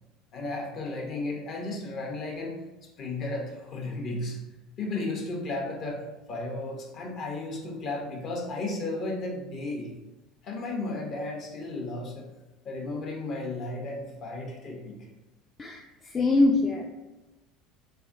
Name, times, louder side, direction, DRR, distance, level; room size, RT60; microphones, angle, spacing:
voice 1, 0.3-2.6 3.0-4.4 4.8-9.9 10.4-12.3 12.6-15.0, left 2 dB, 50° left, 1 dB, 0.7 m, -34 dB
voice 2, 15.6-16.9, left 2 dB, 30° left, 1 dB, 0.3 m, -24 dB
3.3 x 2.7 x 2.5 m, 1.1 s
hypercardioid pair, 75°, 0 cm